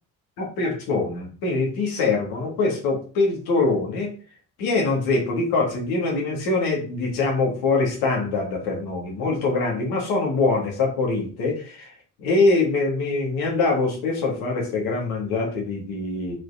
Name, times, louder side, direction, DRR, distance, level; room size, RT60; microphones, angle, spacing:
voice 1, 0.4-4.1 4.6-11.9 12.2-16.4, left 3 dB, 85° left, -1 dB, 3.3 m, -23 dB
6.1 x 5.1 x 5.4 m, 0.39 s
supercardioid pair, 65°, 35 cm